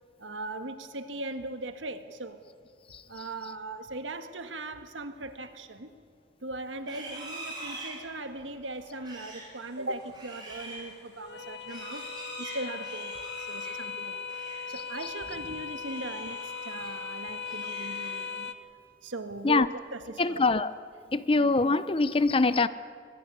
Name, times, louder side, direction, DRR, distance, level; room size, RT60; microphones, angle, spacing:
voice 1, 0.2-2.4 3.1-5.9 6.4-12.1 12.4-14.2 14.7-18.5 19.0-20.4, right 2 dB, 90° right, 8 dB, 1.7 m, -39 dB
Livestock farm animals working animals, 6.8-14.7 15.0-15.3 15.7-17.0 17.3-18.4, right 2 dB, 25° right, 6.5 m, -44 dB
sound 1, 9.6-18.5, left 5 dB, 60° left, 1.0 m, -39 dB
voice 2, 20.2-20.7 21.1-22.7, left 3 dB, 30° left, 15 dB, 0.6 m, -23 dB
24.5 x 17.5 x 9.7 m, 2.2 s
head